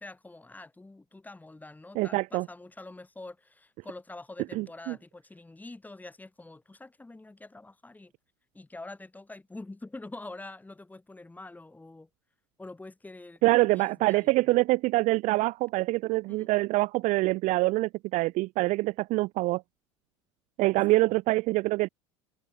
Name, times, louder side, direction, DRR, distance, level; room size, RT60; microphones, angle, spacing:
voice 1, 0.0-8.1 8.5-12.1 12.6-14.6 16.3-16.5 20.9-21.0, left 2 dB, 10° left, 4.2 m, -46 dB
voice 2, 2.0-2.5 4.5-5.0 13.4-19.6 20.6-21.9, right 20 dB, 50° right, 0.8 m, -25 dB
figure-of-eight pair, 70°, 16 cm